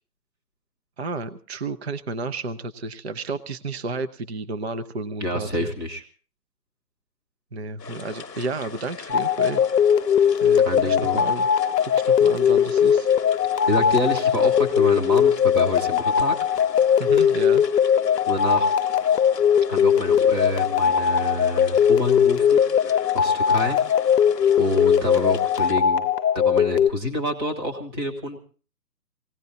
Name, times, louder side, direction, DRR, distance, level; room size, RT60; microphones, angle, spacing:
voice 1, 1.0-5.7 7.5-9.6 10.4-11.5 11.8-13.1 17.0-17.6 20.8-20.9, right 3 dB, 40° right, 11 dB, 0.7 m, -32 dB
voice 2, 5.2-6.0 10.6-11.2 13.7-16.3 18.3-18.7 19.7-23.8 24.6-26.0 26.3-28.4, left 1 dB, 15° right, 2 dB, 1.3 m, -27 dB
sound 1, 7.8-25.7, left 6 dB, 5° left, 0.8 m, -40 dB
sound 2, 9.1-26.9, left 8 dB, 70° left, 0.7 m, -20 dB
19.5 x 17.0 x 3.9 m, 0.39 s
hypercardioid pair, 165°, 49 cm